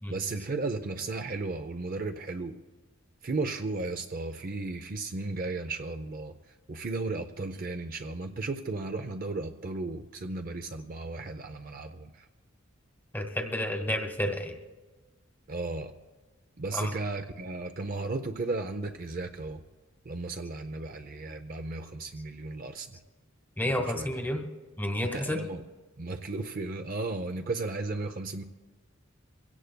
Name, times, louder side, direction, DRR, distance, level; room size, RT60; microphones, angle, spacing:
voice 1, 0.1-2.5 3.2-6.3 6.7-12.3 15.5-15.9 16.6-19.6 20.1-23.0 23.9-24.1 25.1-25.6 26.0-28.4, right 3 dB, 45° right, 6 dB, 0.5 m, -35 dB
voice 2, 13.1-14.6 16.7-16.9 23.6-24.5 24.8-25.4, left 1 dB, 10° left, 4 dB, 1.1 m, -30 dB
24.0 x 17.0 x 2.2 m, 1.3 s
head